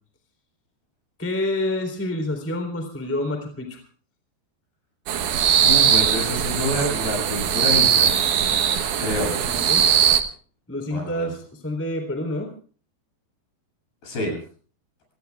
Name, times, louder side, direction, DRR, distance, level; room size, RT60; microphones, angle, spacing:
voice 1, 1.2-3.8 9.0-9.8 10.7-12.5, left 1 dB, 5° left, 4 dB, 2.9 m, -28 dB
sound 1, 5.1-10.2, right 8 dB, 70° right, 1.9 m, -20 dB
voice 2, 5.6-8.2 9.0-9.3 10.9-11.3 14.0-14.4, left 1 dB, 55° left, 1 dB, 9.6 m, -27 dB
29.5 x 18.5 x 2.4 m, 0.41 s
omnidirectional pair, 5.2 m